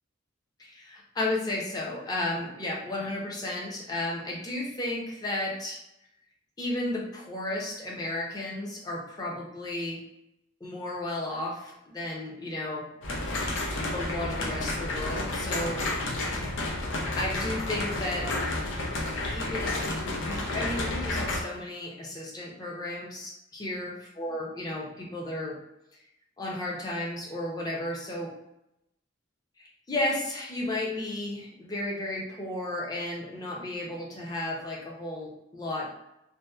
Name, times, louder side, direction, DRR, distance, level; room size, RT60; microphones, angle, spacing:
voice 1, 0.6-5.8 6.6-10.0 10.6-12.9 13.9-15.8 17.2-18.3 19.3-25.6 26.4-28.3 29.6-35.9, left 1 dB, 20° left, -3 dB, 0.5 m, -33 dB
sound 1, 13.0-21.4, left 2 dB, 90° left, 0.5 m, -31 dB
2.7 x 2.0 x 2.2 m, 0.85 s
head